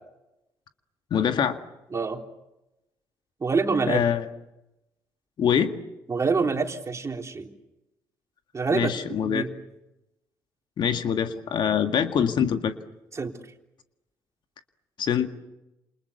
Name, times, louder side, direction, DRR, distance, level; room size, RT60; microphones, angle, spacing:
voice 1, 1.1-1.6 3.9-4.3 5.4-5.7 8.7-9.4 10.8-12.7 15.0-15.3, left 8 dB, 55° left, 7 dB, 2.0 m, -24 dB
voice 2, 1.9-2.2 3.4-4.0 6.1-7.5 8.5-9.5 13.1-13.3, right 4 dB, 30° right, 3 dB, 3.7 m, -26 dB
29.0 x 28.5 x 7.0 m, 0.95 s
hypercardioid pair, 50°, 9 cm